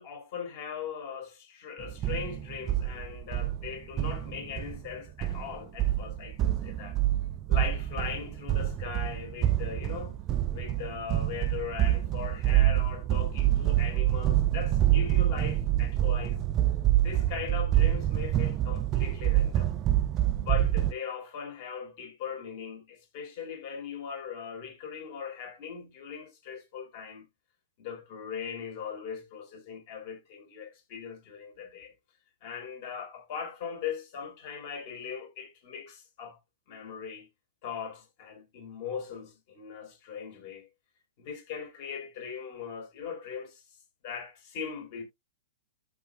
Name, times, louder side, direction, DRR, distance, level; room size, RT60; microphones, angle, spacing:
voice 1, 0.0-7.0 7.5-10.2 10.5-16.4 17.0-19.7 20.4-27.3 27.8-31.9 32.4-36.4 36.7-37.3 37.6-40.7 41.2-43.6 44.0-45.0, left 7 dB, 45° left, 3.7 m, -39 dB
sound 1, 1.8-20.9, right 13 dB, 30° right, 0.6 m, -27 dB
14.0 x 5.4 x 2.2 m
figure-of-eight pair, 110°, 0 cm